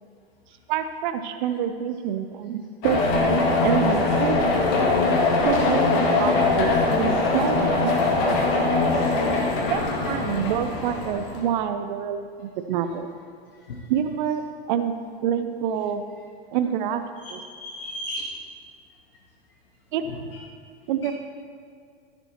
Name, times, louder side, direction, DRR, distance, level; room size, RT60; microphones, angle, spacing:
voice 1, 0.7-4.4 5.4-7.9 9.7-13.1 13.9-15.0 15.2-16.0 16.5-17.0 17.3-17.4 19.9-20.0 20.9-21.1, right 9 dB, 50° right, 9 dB, 0.7 m, -27 dB
sound 1, 2.8-11.4, left 3 dB, 45° left, 2.2 m, -22 dB
voice 2, 17.2-18.3 20.1-20.2 21.0-21.1, equal, 65° left, -1 dB, 1.5 m, -36 dB
14.0 x 11.0 x 2.9 m, 2.2 s
figure-of-eight pair, 90°, 31 cm